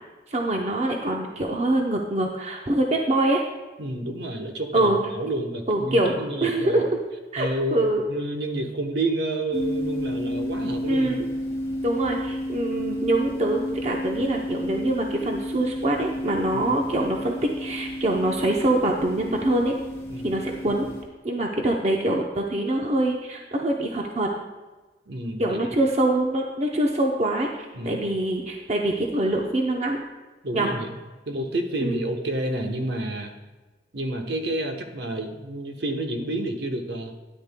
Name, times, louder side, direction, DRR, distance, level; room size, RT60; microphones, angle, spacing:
voice 1, 0.3-3.4 4.7-5.0 5.7-6.1 6.4-6.9 7.3-8.1 10.9-11.3 11.8-19.8 20.2-20.9 21.2-24.3 25.4-27.5 27.8-30.0 30.5-30.7 31.8-32.0, right 1 dB, 35° right, 0 dB, 0.7 m, -24 dB
voice 2, 3.8-6.8 7.4-11.2 16.5-16.7 20.1-20.3 20.7-20.8 25.1-25.6 27.7-28.0 30.4-31.0 31.3-33.3 33.9-37.1, right 1 dB, 65° right, 4 dB, 1.0 m, -29 dB
sound 1, 9.5-21.0, equal, 15° left, 1.7 m, -31 dB
13.0 x 9.9 x 2.2 m, 1.2 s
head